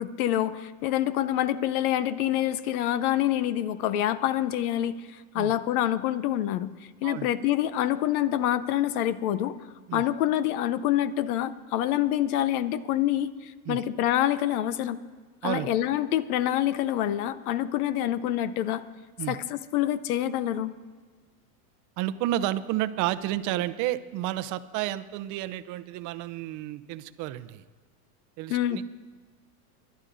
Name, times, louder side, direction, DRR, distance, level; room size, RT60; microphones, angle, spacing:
voice 1, 0.0-6.7 7.0-9.6 9.9-15.0 15.4-18.8 19.3-20.7 28.5-28.8, left 12 dB, 65° left, 15 dB, 0.8 m, -26 dB
voice 2, 22.0-27.6 28.4-28.8, right 14 dB, 40° right, 14 dB, 0.6 m, -31 dB
28.0 x 11.5 x 2.6 m, 1.4 s
supercardioid pair, 125°, 47 cm